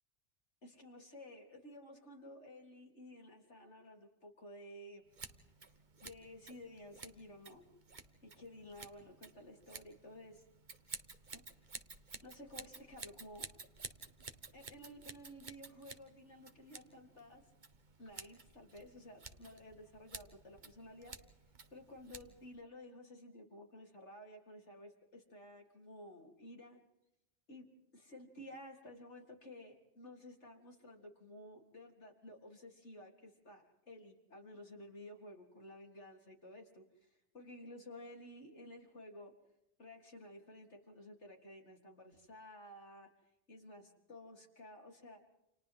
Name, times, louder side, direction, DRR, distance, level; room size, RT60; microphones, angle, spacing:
voice 1, 0.6-5.0 6.0-7.6 8.2-10.4 11.3-11.8 12.2-13.5 14.5-17.5 18.0-21.2 21.7-26.8 27.5-27.7 27.9-39.3 39.8-43.1 43.5-45.2, left 1 dB, 80° left, 1 dB, 4.1 m, -54 dB
Scissors, 5.1-22.6, right 4 dB, 40° right, 1.4 m, -53 dB
29.5 x 28.5 x 3.8 m, 0.87 s
omnidirectional pair, 1.2 m